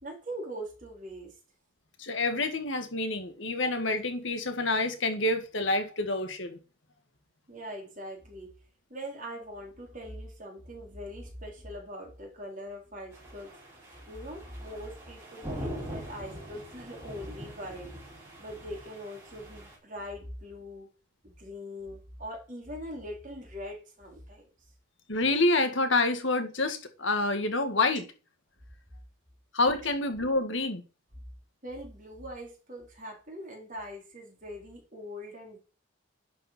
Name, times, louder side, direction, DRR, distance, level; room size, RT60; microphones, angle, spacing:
voice 1, 0.0-1.4 7.5-8.5 8.9-13.5 14.1-18.0 18.4-20.9 21.2-24.5 31.6-35.6, equal, 40° right, 4.1 m, -42 dB
voice 2, 2.0-6.6 25.1-28.0 29.5-30.8, left 2 dB, 70° left, 1.9 m, -27 dB
sound 1, 13.1-19.8, equal, 15° right, 5.0 m, -43 dB
11.0 x 5.3 x 6.0 m
head